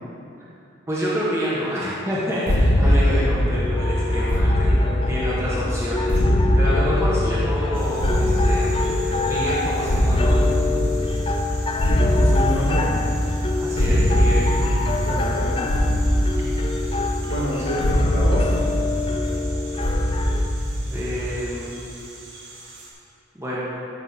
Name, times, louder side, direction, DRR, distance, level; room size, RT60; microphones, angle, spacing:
voice 1, 0.9-4.7 5.1-6.2 6.5-8.9 9.2-10.5 13.6-14.5 20.9-21.8 23.3-23.6, equal, 15° right, -8 dB, 1.4 m, -28 dB
sound 1, 2.5-21.4, equal, 60° left, 1.0 m, -22 dB
voice 2, 2.8-3.4 11.9-12.9 15.0-15.6 17.3-18.5, equal, 75° left, -6 dB, 2.1 m, -28 dB
sound 2, 3.5-20.5, left 4 dB, 25° left, 0.5 m, -28 dB
sound 3, 7.7-22.9, right 3 dB, 70° right, 1.8 m, -42 dB
14.5 x 6.1 x 4.1 m, 2.7 s
head